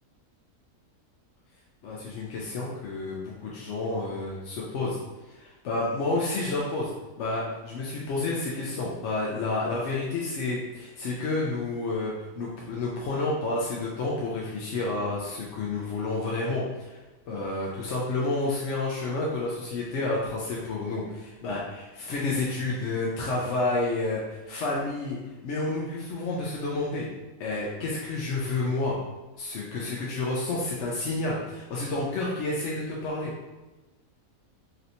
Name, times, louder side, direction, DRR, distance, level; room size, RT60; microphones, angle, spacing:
voice 1, 1.8-5.0 5.3-6.9 7.2-17.0 17.3-25.2 25.4-27.1 27.4-29.0 29.4-33.3, left 2 dB, 65° left, -4 dB, 0.7 m, -30 dB
3.2 x 2.8 x 2.6 m, 1.1 s
omnidirectional pair, 1.6 m